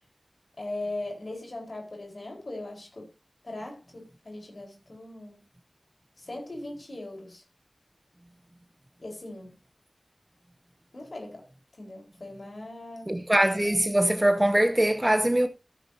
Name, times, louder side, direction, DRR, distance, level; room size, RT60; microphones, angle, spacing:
voice 1, 0.6-3.1 3.4-5.4 6.2-7.4 9.0-9.5 10.9-11.4 11.8-13.2, left 2 dB, 65° left, 4.3 m, -39 dB
voice 2, 13.1-15.5, right 1 dB, 20° right, 0.7 m, -22 dB
14.5 x 9.1 x 2.7 m
wide cardioid pair, 60°, 0 cm